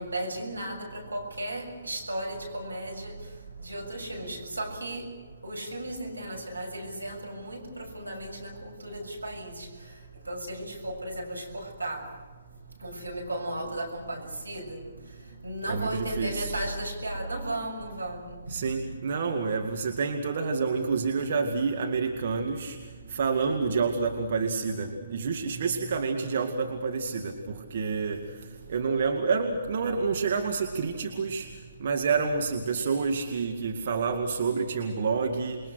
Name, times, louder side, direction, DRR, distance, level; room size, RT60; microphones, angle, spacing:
voice 1, 0.0-5.1 5.4-12.1 12.8-18.6, right 1 dB, 85° right, 4 dB, 6.7 m, -36 dB
voice 2, 15.7-16.5 18.5-22.8 23.1-28.2 28.7-31.5 31.8-35.6, right 5 dB, 50° right, 4 dB, 2.1 m, -28 dB
28.0 x 22.5 x 6.5 m, 1.5 s
figure-of-eight pair, 135°, 0 cm